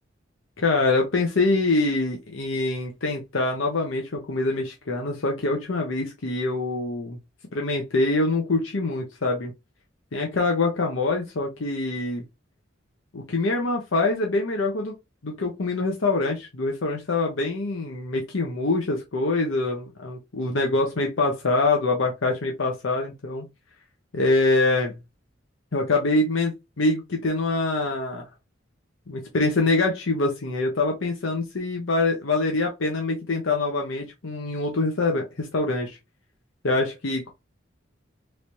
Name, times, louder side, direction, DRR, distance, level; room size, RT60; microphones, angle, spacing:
voice 1, 0.6-7.2 7.5-9.5 10.1-12.2 13.1-14.9 15.2-23.4 24.1-25.0 25.7-28.3 29.1-36.0 36.6-37.3, left 2 dB, 90° left, 0.8 m, -24 dB
3.2 x 3.1 x 2.7 m
head